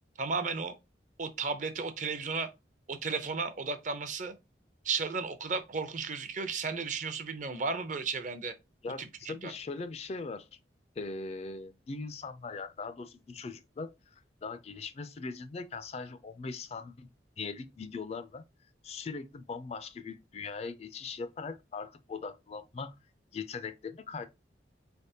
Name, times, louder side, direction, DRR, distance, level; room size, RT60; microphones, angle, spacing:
voice 1, 0.2-0.7 1.2-2.5 2.9-4.4 4.8-8.5 9.0-9.5, right 4 dB, 45° right, 0.5 m, -34 dB
voice 2, 8.8-10.6 11.0-13.9 14.4-17.1 17.4-18.4 18.8-22.9 23.3-24.3, left 4 dB, 35° left, 0.3 m, -40 dB
4.1 x 3.4 x 2.7 m
head